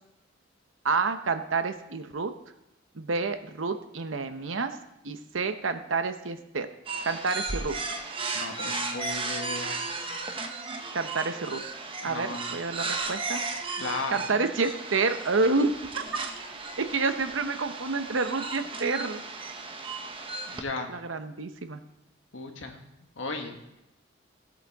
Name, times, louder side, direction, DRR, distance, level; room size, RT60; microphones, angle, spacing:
voice 1, 0.8-2.3 2.9-4.8 5.0-6.7 7.1-7.7 10.9-11.6 12.0-13.4 14.1-16.0 16.3-19.2 20.9-21.8, right 4 dB, 80° right, 9 dB, 0.9 m, -29 dB
sound 1, 6.8-20.6, right 3 dB, 30° right, 1.0 m, -35 dB
voice 2, 8.3-10.0 12.0-12.4 13.8-14.2 20.5-20.9 22.3-22.8 23.2-23.5, left 3 dB, 75° left, 4 dB, 1.5 m, -35 dB
16.5 x 8.0 x 3.6 m, 0.90 s
head